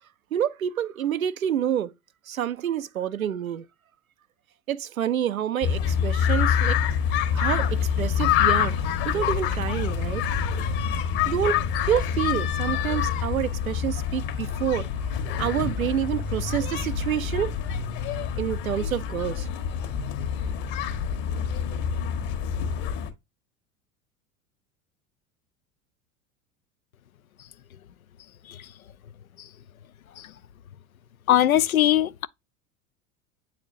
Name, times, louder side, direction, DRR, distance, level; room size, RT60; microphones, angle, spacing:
voice 1, 0.3-1.9 2.3-3.6 4.7-6.8 7.3-8.7 9.0-10.2 11.3-14.9 15.4-17.5 18.4-19.5, right 10 dB, 85° right, 0.6 m, -28 dB
sound 1, 5.6-23.1, left 8 dB, 50° left, 1.4 m, -26 dB
voice 2, 31.3-32.3, left 12 dB, 80° left, 0.5 m, -21 dB
8.8 x 4.2 x 2.6 m
figure-of-eight pair, 80°, 41 cm